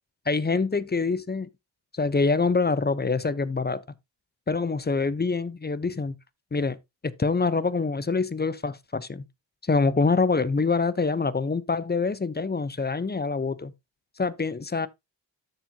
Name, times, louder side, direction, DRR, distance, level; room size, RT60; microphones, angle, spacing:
voice 1, 0.3-1.5 2.0-3.8 4.5-6.2 6.5-6.8 7.0-9.3 9.7-13.7 14.2-14.9, left 4 dB, 20° left, 0.6 m, -25 dB
13.0 x 4.4 x 2.7 m
cardioid pair, 45°, 44 cm